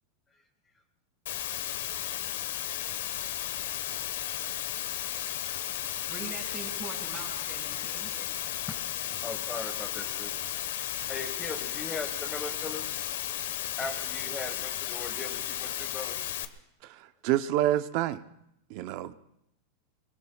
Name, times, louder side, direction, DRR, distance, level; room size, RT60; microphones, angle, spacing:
Water, 1.3-16.5, left 12 dB, 80° left, 1.1 m, -34 dB
voice 1, 6.0-8.5, right 4 dB, 20° right, -5 dB, 5.7 m, -43 dB
voice 2, 9.1-10.3 11.1-12.9 13.8-16.2, left 3 dB, 10° left, 3 dB, 1.3 m, -39 dB
voice 3, 16.8-18.2 18.7-19.1, right 13 dB, 45° right, 12 dB, 0.6 m, -28 dB
26.0 x 23.0 x 2.3 m, 0.79 s
supercardioid pair, 170°, 0 cm